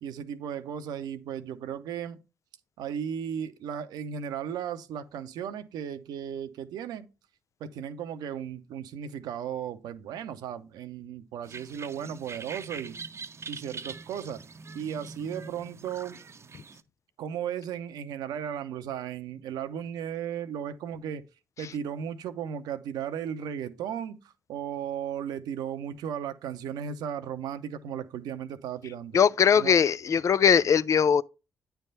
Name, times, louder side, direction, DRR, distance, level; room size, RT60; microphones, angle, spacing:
voice 1, 0.0-2.2 2.8-7.1 7.6-13.0 13.5-14.4 14.7-16.2 17.2-21.2 21.6-29.2 29.5-29.8, right 8 dB, 75° right, 0.7 m, -35 dB
sound 1, 11.4-16.8, right 4 dB, 40° right, 0.7 m, -43 dB
voice 2, 29.1-31.2, left 7 dB, 50° left, 0.4 m, -20 dB
9.0 x 3.4 x 5.4 m
hypercardioid pair, 45°, 7 cm